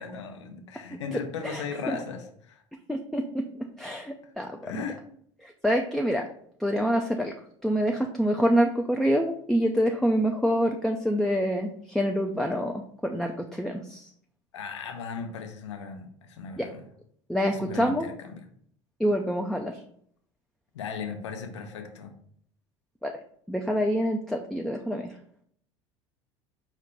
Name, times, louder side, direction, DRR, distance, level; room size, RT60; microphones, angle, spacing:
voice 1, 0.0-2.6 4.2-4.3 4.6-5.0 14.5-16.8 17.5-18.5 20.7-22.1, left 6 dB, 75° left, 5 dB, 0.6 m, -37 dB
voice 2, 1.4-2.0 2.9-3.4 3.8-4.8 5.4-6.3 6.6-7.3 7.6-14.0 16.6-16.7 17.3-18.1 19.0-19.8 23.0-23.1 23.5-25.1, equal, ahead, 2 dB, 0.3 m, -26 dB
5.0 x 2.1 x 4.0 m, 0.65 s
figure-of-eight pair, 70°, 15 cm